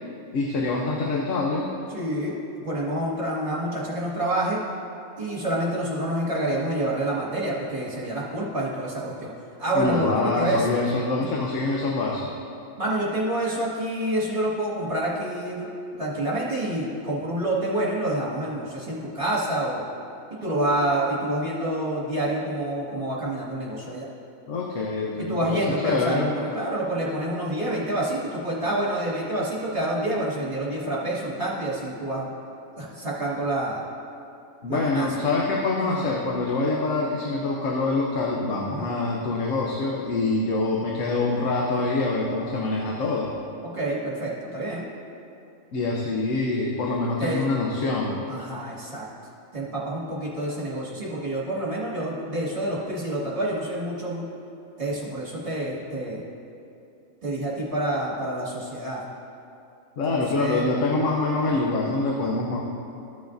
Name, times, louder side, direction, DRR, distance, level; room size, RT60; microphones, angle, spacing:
voice 1, 0.3-1.7 9.7-12.3 24.5-26.3 34.6-43.3 45.7-48.2 60.0-62.6, left 3 dB, 65° left, -2 dB, 1.1 m, -25 dB
voice 2, 1.9-4.6 5.2-9.3 9.6-10.7 12.8-15.6 16.0-19.8 20.4-24.1 25.2-32.3 32.7-33.8 34.7-35.1 35.8-36.0 38.7-38.9 43.6-44.9 47.2-47.5 48.3-49.1 49.5-54.2 54.8-56.2 57.2-59.0 60.0-60.7, right 1 dB, 35° right, -8 dB, 2.0 m, -28 dB
14.0 x 7.0 x 2.6 m, 2.7 s
omnidirectional pair, 1.5 m